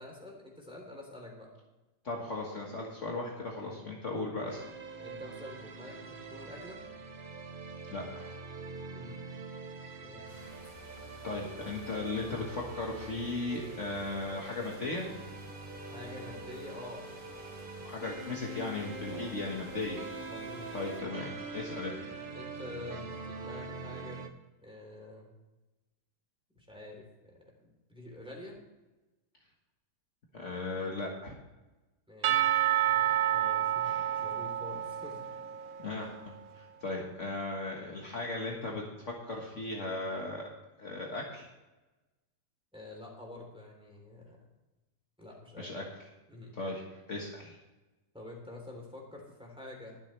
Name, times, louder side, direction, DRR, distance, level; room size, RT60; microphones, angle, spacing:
voice 1, 0.0-1.5 3.6-3.8 5.0-6.8 8.9-9.2 9.9-10.5 15.9-17.0 19.1-19.4 20.3-20.9 22.3-24.2 24.6-25.3 26.5-28.6 32.1-32.6 33.3-35.2 42.7-44.4 45.2-45.7 46.3-46.6 48.1-50.0, left 2 dB, 5° right, -1 dB, 3.3 m, -47 dB
voice 2, 2.0-4.6 7.9-8.3 11.2-15.1 17.9-20.1 20.7-22.2 30.3-31.3 35.8-38.8 39.2-40.4 40.8-41.5 45.6-45.8 46.5-46.8 47.1-47.6, left 2 dB, 45° left, -1 dB, 1.8 m, -37 dB
sound 1, 4.5-24.3, right 3 dB, 40° right, 0.9 m, -44 dB
sound 2, 10.3-21.0, equal, 15° left, 3.4 m, -54 dB
Percussion / Church bell, 32.2-36.1, right 12 dB, 65° right, 1.0 m, -29 dB
21.5 x 7.5 x 3.3 m, 1.1 s
omnidirectional pair, 1.8 m